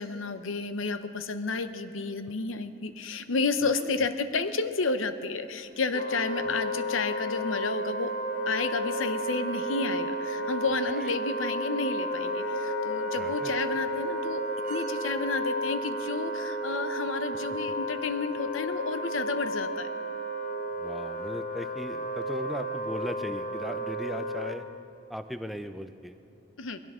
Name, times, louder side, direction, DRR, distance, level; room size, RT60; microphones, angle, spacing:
voice 1, 0.0-8.1 8.5-14.4 14.7-19.9 26.6-26.8, left 3 dB, 75° left, 10 dB, 0.8 m, -31 dB
sound 1, 5.6-15.4, right 5 dB, 40° right, 0.8 m, -42 dB
Wind instrument woodwind instrument, 5.9-24.6, equal, 40° left, 1.0 m, -33 dB
voice 2, 13.2-13.6 20.8-24.7 25.1-26.2, equal, ahead, 8 dB, 0.5 m, -38 dB
21.0 x 17.0 x 3.7 m, 2.6 s
head